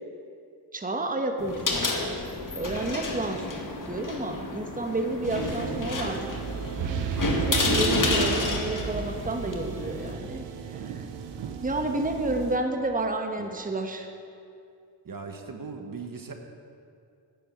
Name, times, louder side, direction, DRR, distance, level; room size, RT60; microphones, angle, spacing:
voice 1, 0.7-2.1 2.5-6.3 7.4-10.4 10.8-11.0 11.6-14.1, right 2 dB, 20° right, 5 dB, 1.2 m, -30 dB
sound 1, 1.4-10.1, left 2 dB, 45° left, 1.9 m, -30 dB
sound 2, 5.2-12.6, right 7 dB, 85° right, 0.9 m, -34 dB
voice 2, 15.0-16.3, right 4 dB, 50° right, 5 dB, 1.3 m, -39 dB
9.9 x 7.7 x 8.8 m, 2.4 s
cardioid pair, 45°, 44 cm